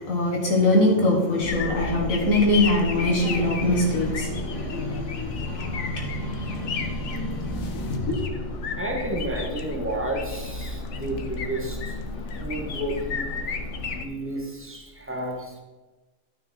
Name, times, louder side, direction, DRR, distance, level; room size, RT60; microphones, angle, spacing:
voice 1, 0.0-8.2, left 2 dB, 80° left, -2 dB, 2.0 m, -24 dB
sound 1, 1.4-14.0, left 3 dB, 60° left, 1.2 m, -32 dB
voice 2, 8.8-12.0 12.4-13.3 13.9-15.6, right 1 dB, 10° right, 1 dB, 1.5 m, -31 dB
12.0 x 6.1 x 4.5 m, 1.2 s
omnidirectional pair, 1.4 m